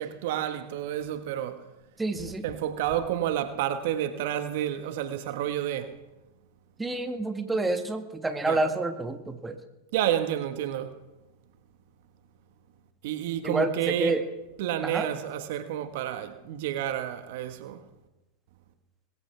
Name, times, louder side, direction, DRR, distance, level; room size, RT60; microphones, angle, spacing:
voice 1, 0.0-1.6 2.4-5.9 8.5-8.6 9.9-10.9 13.0-14.2 14.6-17.8, right 11 dB, 65° right, 1.4 m, -30 dB
voice 2, 2.0-2.4 6.8-9.6 13.4-14.2 14.8-15.1, right 2 dB, 10° right, 1.5 m, -28 dB
22.5 x 14.0 x 3.4 m
hypercardioid pair, 105°, 0 cm